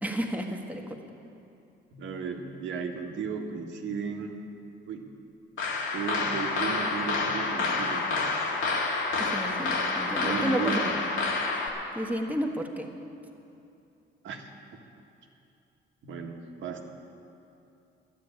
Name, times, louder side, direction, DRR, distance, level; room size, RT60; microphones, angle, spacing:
voice 1, 0.0-1.0 9.2-10.9 11.9-12.9, equal, 10° right, 2 dB, 1.5 m, -32 dB
voice 2, 1.9-4.4 4.9-5.1 5.9-8.3 10.2-11.0 12.3-12.4 14.2-14.5 16.0-16.9, right 5 dB, 75° right, 3 dB, 1.6 m, -35 dB
sound 1, 5.6-11.7, left 3 dB, 75° left, 2.0 m, -28 dB
12.0 x 10.0 x 8.9 m, 2.7 s
cardioid pair, 90°, 20 cm